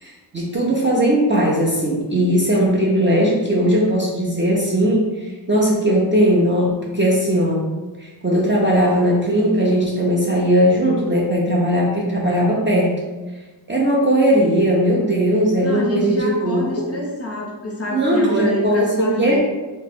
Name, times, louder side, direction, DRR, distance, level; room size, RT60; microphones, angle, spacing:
voice 1, 0.0-7.7 8.0-12.9 13.7-16.6 17.9-19.4, equal, 25° right, -4 dB, 0.4 m, -18 dB
voice 2, 15.6-19.4, left 1 dB, 35° left, -3 dB, 0.6 m, -26 dB
2.8 x 2.0 x 3.3 m, 1.2 s
wide cardioid pair, 115°, 45 cm